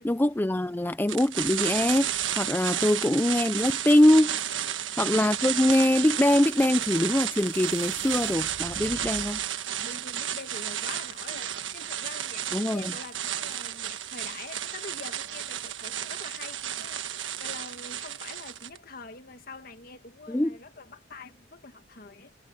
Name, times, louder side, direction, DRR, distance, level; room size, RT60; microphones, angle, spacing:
voice 1, 0.0-4.4 5.0-9.4 12.5-12.9 20.3-20.6, left 1 dB, 10° left, 0.4 m, -23 dB
sound 1, 1.1-18.8, right 10 dB, 90° right, 1.4 m, -32 dB
voice 2, 4.4-4.8 8.7-9.3 9.7-22.3, left 4 dB, 50° left, 1.9 m, -45 dB
sound 2, 5.4-9.5, right 3 dB, 70° right, 1.1 m, -48 dB
head